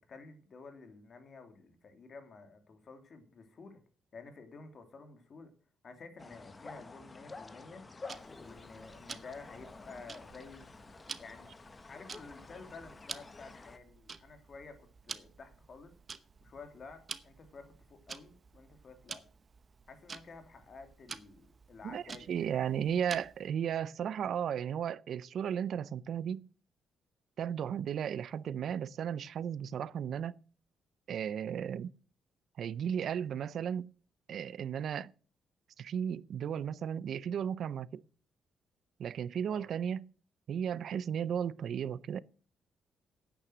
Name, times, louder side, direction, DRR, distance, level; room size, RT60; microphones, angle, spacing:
voice 1, 0.1-3.8 4.1-5.5 5.8-7.8 8.4-10.7 11.2-11.5 11.9-14.8 15.0-15.9 16.4-19.2 19.9-22.3 39.5-39.7, left 4 dB, 45° left, 2.7 m, -51 dB
sound 1, 6.2-13.8, left 3 dB, 25° left, 1.1 m, -50 dB
Tick-tock, 8.1-23.5, right 5 dB, 40° right, 0.9 m, -50 dB
voice 2, 21.8-26.4 27.4-30.4 31.1-31.9 32.6-33.9 34.3-35.1 35.8-38.0 39.0-40.1 40.5-42.2, right 8 dB, 65° right, 0.6 m, -35 dB
9.6 x 9.0 x 6.1 m
cardioid pair, 105°, 0 cm